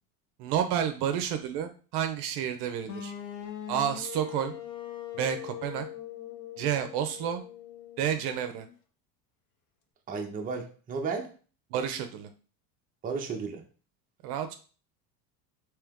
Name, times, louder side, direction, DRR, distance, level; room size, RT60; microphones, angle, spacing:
voice 1, 0.4-3.1 3.7-4.5 5.1-5.9 6.6-7.4 8.0-8.7 11.7-12.3 14.2-14.5, right 9 dB, 55° right, 7 dB, 0.6 m, -30 dB
sound 1, 2.9-8.7, left 11 dB, 40° left, 0.7 m, -41 dB
voice 2, 10.1-11.3 13.0-13.6, right 4 dB, 15° right, 2 dB, 0.6 m, -33 dB
3.4 x 3.0 x 3.5 m, 0.38 s
supercardioid pair, 105°, 49 cm